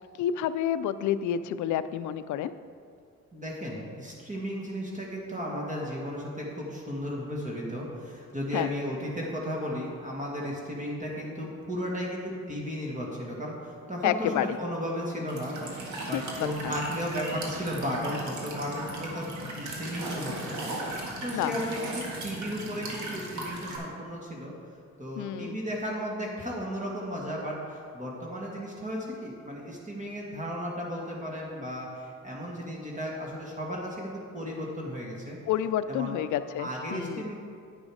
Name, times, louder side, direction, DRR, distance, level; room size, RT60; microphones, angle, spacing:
voice 1, 0.2-2.5 8.5-8.7 14.0-14.6 16.1-16.8 21.3-21.6 25.2-25.6 35.5-37.3, left 10 dB, 75° left, 13 dB, 0.5 m, -29 dB
voice 2, 3.3-19.3 19.6-20.8 21.2-24.5 25.0-35.4 35.9-36.2 36.6-37.3, equal, 25° right, -3 dB, 1.8 m, -35 dB
Walk footsteps / Chirp tweet / Stream, 15.3-23.8, right 1 dB, 75° right, 1.7 m, -37 dB
9.8 x 6.2 x 4.9 m, 2.2 s
cardioid pair, 90°, 30 cm